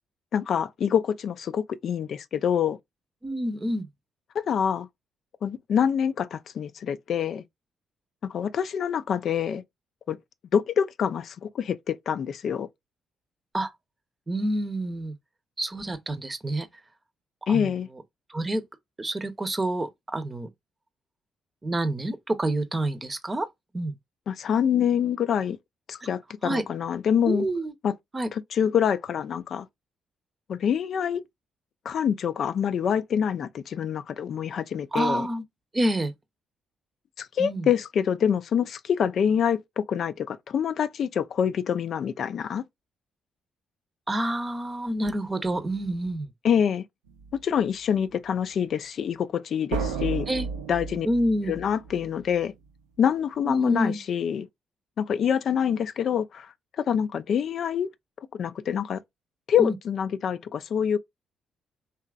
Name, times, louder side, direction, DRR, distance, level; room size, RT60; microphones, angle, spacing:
voice 1, 0.3-2.8 4.3-4.9 5.4-7.4 8.3-9.6 10.1-10.2 10.5-12.7 17.5-17.9 24.3-25.6 25.9-27.5 27.8-27.9 28.3-29.7 30.5-31.2 31.9-35.3 37.2-42.6 46.4-46.8 47.4-50.3 50.7-51.1 51.5-52.5 53.0-54.5 55.0-57.9 58.3-59.0 59.5-61.0, left 8 dB, 60° left, 0.3 m, -26 dB
voice 2, 3.2-3.9 13.5-13.7 14.3-15.1 15.6-16.7 17.5-17.7 18.3-18.6 19.0-20.5 21.6-23.5 23.7-23.9 26.4-26.6 27.2-27.7 28.1-28.3 34.9-35.4 35.7-36.1 37.4-37.7 44.1-46.3 50.3-50.5 51.0-51.6 53.4-54.0 59.6-59.8, right 1 dB, 25° right, 0.7 m, -28 dB
sound 1, 47.1-47.4 49.7-52.3, right 5 dB, 90° right, 0.4 m, -33 dB
2.9 x 2.4 x 2.3 m
hypercardioid pair, 45°, 0 cm